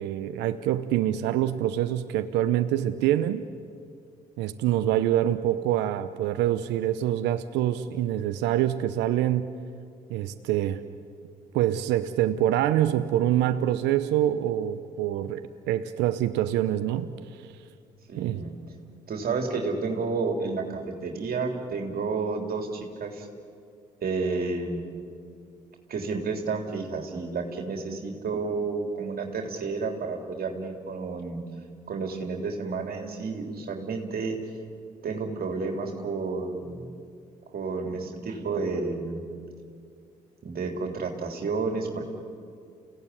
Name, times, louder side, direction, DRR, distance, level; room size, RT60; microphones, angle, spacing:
voice 1, 0.0-3.4 4.4-9.5 10.1-10.8 11.5-17.1 18.2-18.4, right 12 dB, 80° right, 11 dB, 0.8 m, -25 dB
voice 2, 18.1-18.5 19.1-23.3 24.0-25.1 25.9-31.4 31.9-34.4 35.0-36.9 37.5-39.2 40.4-42.1, right 4 dB, 60° right, 3 dB, 3.6 m, -31 dB
29.5 x 17.0 x 9.9 m, 2.3 s
hypercardioid pair, 50°, 18 cm